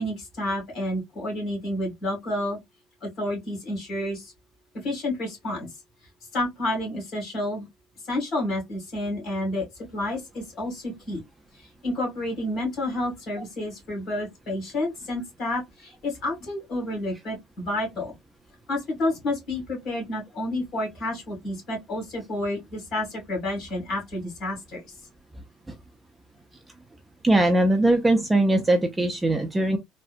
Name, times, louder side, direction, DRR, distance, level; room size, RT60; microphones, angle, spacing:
voice 1, 0.0-2.6 3.0-4.3 4.7-5.7 6.3-7.7 8.0-11.2 11.5-18.2 18.7-24.9, left 1 dB, 40° left, 2.1 m, -30 dB
voice 2, 27.2-29.8, right 1 dB, 10° right, 0.4 m, -20 dB
3.6 x 2.1 x 2.4 m
cardioid pair, 170°, 0 cm